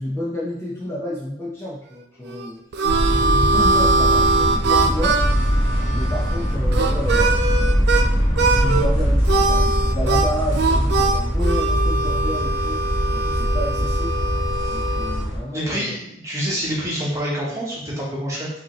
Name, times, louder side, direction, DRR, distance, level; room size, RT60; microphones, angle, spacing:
voice 1, 0.0-2.6 3.1-5.5 5.9-12.8 13.1-14.2 14.7-16.0, equal, 15° left, -7 dB, 0.6 m, -30 dB
Harmonica, 2.3-8.1 8.4-8.9 9.2-15.3, right 3 dB, 60° right, 0.4 m, -22 dB
sound 1, 2.8-15.4, equal, 30° left, 1.6 m, -21 dB
voice 2, 15.5-18.5, equal, 15° right, -6 dB, 1.2 m, -26 dB
4.9 x 2.8 x 3.2 m, 0.78 s
head